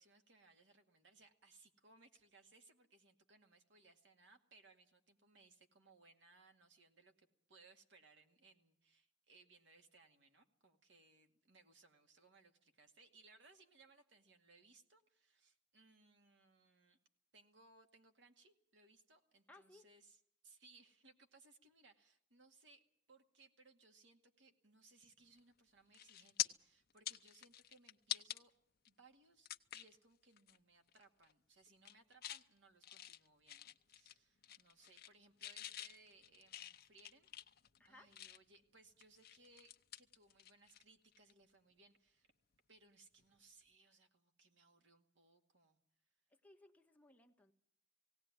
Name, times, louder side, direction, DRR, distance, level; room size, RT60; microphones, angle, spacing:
voice 1, 0.0-17.0 17.3-28.5 28.9-37.3 37.8-42.3 42.7-45.8, right 3 dB, 75° right, 5 dB, 2.2 m, -67 dB
voice 2, 19.5-19.8 37.8-38.1 46.3-47.5, left 2 dB, 10° left, 3 dB, 1.5 m, -63 dB
sound 1, 25.4-25.6 25.9-26.5 26.9-28.4 28.9-29.0 29.5-30.0 30.4-30.6 30.9-31.3 31.7-32.4 32.8-34.2 34.4-35.1 35.4-38.6 39.0-40.8 41.1-41.3 43.2-43.4, left 13 dB, 55° left, 0.8 m, -47 dB
18.0 x 18.0 x 9.6 m, 0.67 s
head